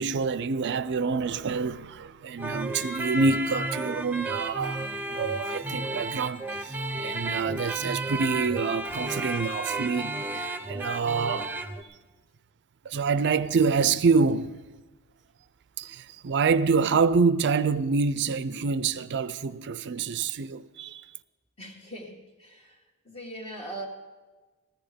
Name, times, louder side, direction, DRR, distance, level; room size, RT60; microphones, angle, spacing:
voice 1, 0.0-11.5 12.8-14.6 15.8-21.1, right 4 dB, 50° right, 0.5 m, -27 dB
sound 1, 2.4-11.8, right 2 dB, 10° right, 0.7 m, -32 dB
voice 2, 21.6-22.7 23.0-23.9, right 1 dB, 30° left, 1.7 m, -40 dB
14.0 x 14.0 x 5.1 m
head